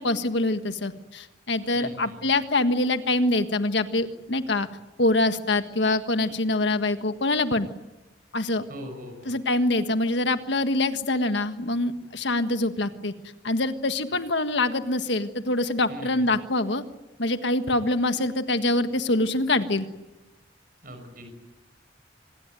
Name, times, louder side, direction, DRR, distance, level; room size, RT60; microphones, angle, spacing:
voice 1, 0.0-4.7 5.0-7.7 8.3-8.6 9.2-13.1 13.4-16.8 17.2-19.9, left 2 dB, 75° left, 9 dB, 1.6 m, -25 dB
voice 2, 1.7-2.2 8.7-9.4 15.9-16.3 20.8-21.3, equal, 50° right, 6 dB, 5.8 m, -41 dB
26.0 x 21.0 x 9.2 m, 1.1 s
head